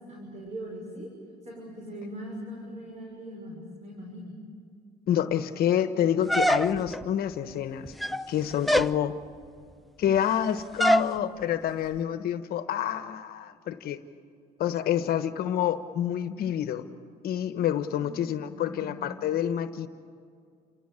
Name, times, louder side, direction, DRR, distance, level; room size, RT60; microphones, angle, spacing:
voice 1, 0.1-1.1 1.4-4.4 17.9-19.0, equal, 45° right, -1 dB, 6.4 m, -41 dB
voice 2, 5.1-7.9 8.3-9.2 10.0-14.0 14.6-16.8 17.2-19.9, left 10 dB, 65° left, 10 dB, 1.2 m, -28 dB
sound 1, 6.3-7.0 7.9-8.3 8.7-9.0 10.8-11.1, equal, ahead, 0.5 m, -23 dB
29.5 x 17.5 x 8.8 m, 2.3 s
cardioid pair, 110°, 17 cm